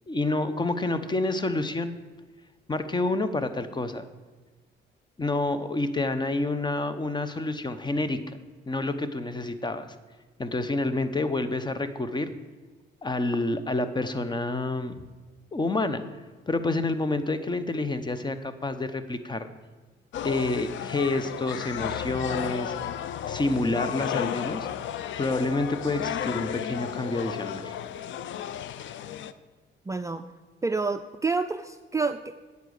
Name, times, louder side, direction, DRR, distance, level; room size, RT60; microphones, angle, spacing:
voice 1, 0.1-2.0 2.7-4.0 5.2-8.2 8.7-9.9 10.4-12.3 13.0-15.1 15.5-16.0 16.5-19.5 20.2-22.7 23.3-24.7 25.2-27.7, left 2 dB, 20° left, 11 dB, 0.9 m, -28 dB
sound 1, 20.1-29.3, left 10 dB, 70° left, 0.6 m, -33 dB
voice 2, 29.9-30.2 30.6-32.3, right 4 dB, 15° right, 8 dB, 0.4 m, -28 dB
9.2 x 8.3 x 6.5 m, 1.3 s
cardioid pair, 90°, 20 cm